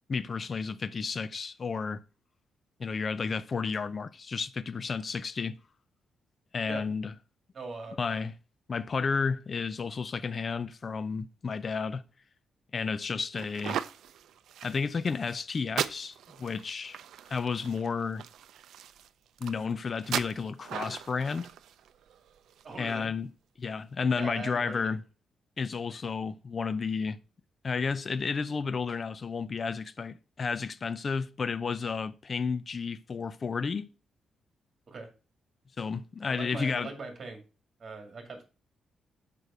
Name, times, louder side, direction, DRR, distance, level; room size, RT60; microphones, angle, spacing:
voice 1, 0.1-2.0 2.8-5.6 6.5-7.1 8.0-8.3 8.7-12.0 12.7-13.8 14.6-17.0 17.3-18.2 19.4-21.5 22.8-23.3 23.6-25.0 25.6-27.2 27.6-33.9 35.8-36.9, left 5 dB, 35° left, 0.4 m, -32 dB
voice 2, 7.5-8.0 22.6-23.1 24.1-24.9 34.9-35.1 36.3-37.4 37.8-38.4, right 3 dB, 35° right, 2.3 m, -40 dB
sound 1, 13.4-22.9, right 10 dB, 80° right, 0.5 m, -39 dB
6.4 x 5.2 x 5.5 m
wide cardioid pair, 160°, 0 cm